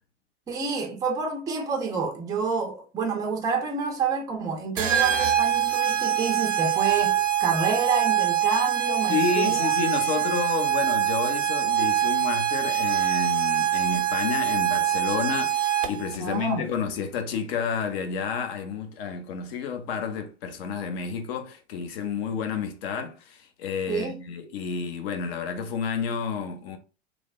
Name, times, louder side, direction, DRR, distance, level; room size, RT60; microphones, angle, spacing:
voice 1, 0.5-9.7 16.2-16.7 23.9-24.2, right 5 dB, 10° right, 0.4 m, -28 dB
sound 1, 4.8-16.2, right 10 dB, 80° right, 0.7 m, -24 dB
voice 2, 9.1-26.8, left 6 dB, 55° left, 0.7 m, -30 dB
3.1 x 2.0 x 2.3 m
hypercardioid pair, 100°, 36 cm